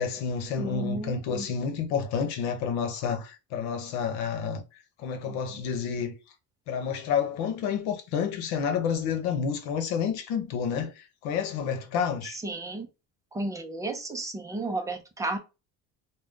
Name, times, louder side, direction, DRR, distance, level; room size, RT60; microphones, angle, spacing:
voice 1, 0.0-4.6 5.0-6.1 6.7-12.4, left 7 dB, 75° left, 0.9 m, -29 dB
voice 2, 0.6-1.5 5.3-5.4 12.4-12.9 13.3-15.4, right 2 dB, 10° right, 0.4 m, -33 dB
2.6 x 2.2 x 3.4 m
cardioid pair, 145°, 37 cm